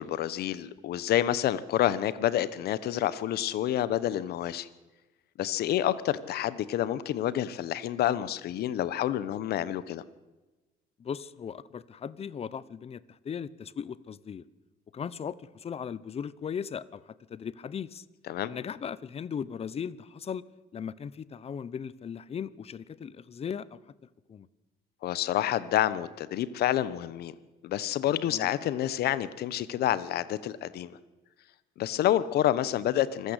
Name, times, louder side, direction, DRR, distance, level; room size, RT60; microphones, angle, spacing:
voice 1, 0.0-4.7 5.4-10.0 18.3-18.5 25.0-27.3 27.6-30.9 31.8-33.3, left 12 dB, 70° left, 16 dB, 1.2 m, -28 dB
voice 2, 11.0-14.4 14.9-17.0 17.3-18.0 18.5-20.4 20.7-23.8 24.3-24.5 28.3-28.5, left 7 dB, 35° left, 19 dB, 1.0 m, -37 dB
25.5 x 15.5 x 8.3 m, 1.1 s
cardioid pair, 110°, 17 cm